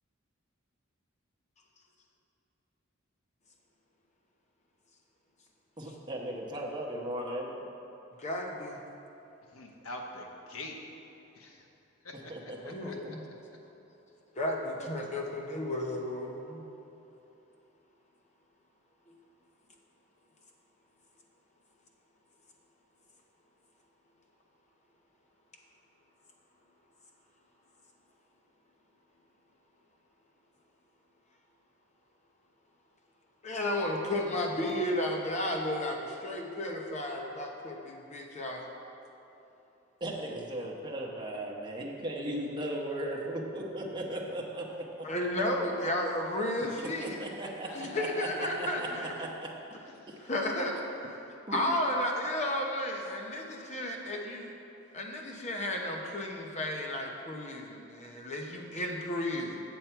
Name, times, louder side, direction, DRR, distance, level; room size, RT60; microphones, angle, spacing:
voice 1, 5.8-7.5 12.3-13.1 40.0-45.1 47.0-48.9 49.2-49.5 51.5-51.8, right 1 dB, 20° right, -2 dB, 1.0 m, -37 dB
voice 2, 8.2-8.8 12.6-13.2 14.4-16.6 19.1-19.2 33.4-38.7 45.0-47.2 47.7-49.1 50.2-50.7 51.0-51.2 51.5-54.5 54.9-59.7, left 1 dB, 35° left, 1 dB, 0.9 m, -33 dB
voice 3, 9.5-10.8 11.3-11.7 12.0-12.2 12.6-12.9 47.1-48.0 50.0-50.2, left 2 dB, 85° left, 1 dB, 1.0 m, -45 dB
7.4 x 7.2 x 4.5 m, 2.9 s
head